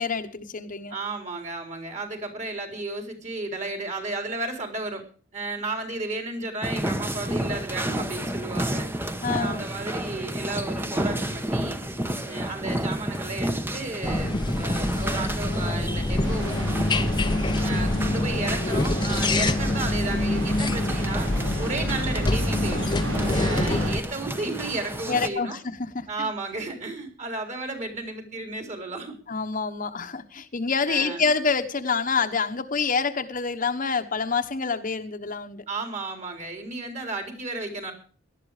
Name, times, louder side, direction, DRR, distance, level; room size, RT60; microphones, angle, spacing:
voice 1, 0.0-0.9 9.2-9.6 25.1-26.3 29.3-35.6, left 5 dB, 45° left, 6 dB, 1.1 m, -27 dB
voice 2, 0.9-5.0 5.3-8.9 9.3-11.8 12.2-17.1 17.6-21.3 21.6-22.9 23.3-25.6 26.1-29.2 30.9-31.3 35.7-37.9, right 2 dB, 40° right, 5 dB, 4.2 m, -33 dB
sound 1, 6.6-25.3, right 1 dB, 10° right, 1.1 m, -32 dB
sound 2, 14.0-24.0, left 2 dB, 25° left, 0.8 m, -26 dB
sound 3, 16.2-23.9, right 1 dB, 90° right, 5.1 m, -34 dB
18.0 x 12.0 x 5.0 m, 0.42 s
head